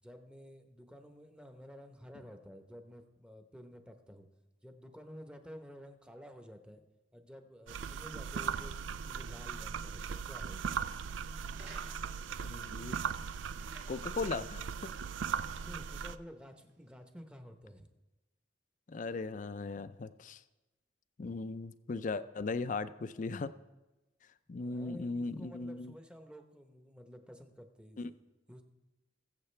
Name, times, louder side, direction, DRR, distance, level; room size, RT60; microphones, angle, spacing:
voice 1, 0.0-4.3 4.6-6.8 7.1-10.8 15.6-17.9 24.5-28.2 28.5-28.6, equal, 5° right, 6 dB, 0.9 m, -52 dB
sound 1, 7.7-16.2, right 6 dB, 85° right, 0.4 m, -39 dB
sound 2, 11.5-12.3 13.4-14.6 15.0-15.1 15.5-15.9 16.7-16.8, right 3 dB, 65° right, 2.1 m, -55 dB
voice 2, 12.4-13.0 13.9-14.9 18.9-20.4 21.2-23.5 24.5-25.9 28.0-28.1, left 3 dB, 45° left, 14 dB, 0.4 m, -38 dB
20.5 x 7.6 x 3.3 m, 1.1 s
head